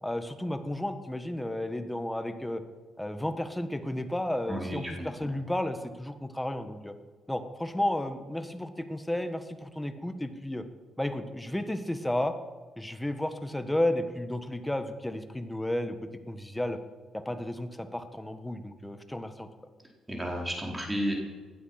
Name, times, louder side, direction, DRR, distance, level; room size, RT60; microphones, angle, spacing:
voice 1, 0.0-2.6 3.0-6.9 7.3-10.6 11.0-12.3 12.8-16.8 17.1-19.5, left 1 dB, 10° left, 9 dB, 1.5 m, -32 dB
voice 2, 4.5-5.1 20.1-21.2, equal, 10° right, -1 dB, 4.5 m, -32 dB
19.0 x 12.0 x 5.9 m, 1.4 s
cardioid pair, 90°, 0 cm